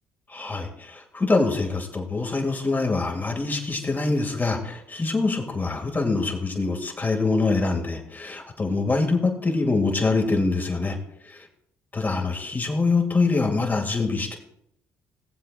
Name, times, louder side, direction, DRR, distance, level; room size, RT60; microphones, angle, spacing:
voice 1, 0.3-11.0 11.3-11.4 11.9-14.4, left 3 dB, 25° left, 1 dB, 2.4 m, -24 dB
18.0 x 7.6 x 2.5 m, 0.76 s
hypercardioid pair, 60°, 7 cm